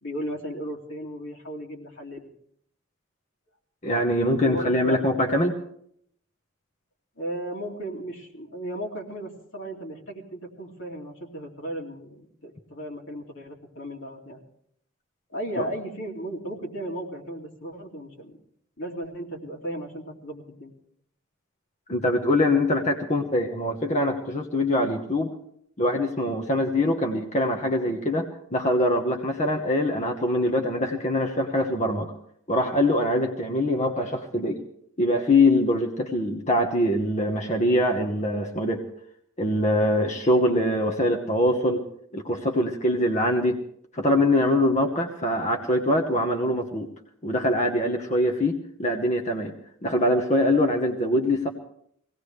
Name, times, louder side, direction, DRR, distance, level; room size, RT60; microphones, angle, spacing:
voice 1, 0.0-2.3 4.4-5.1 7.2-14.4 15.3-18.4 18.8-20.7, right 1 dB, 75° left, 0 dB, 2.6 m, -35 dB
voice 2, 3.8-5.6 21.9-25.3 25.8-32.1 32.5-34.6 35.0-38.8 39.4-41.8 42.1-43.6 43.9-46.9 47.2-49.5 49.8-51.5, left 1 dB, 35° left, 3 dB, 1.1 m, -23 dB
23.0 x 17.5 x 3.3 m, 0.68 s
head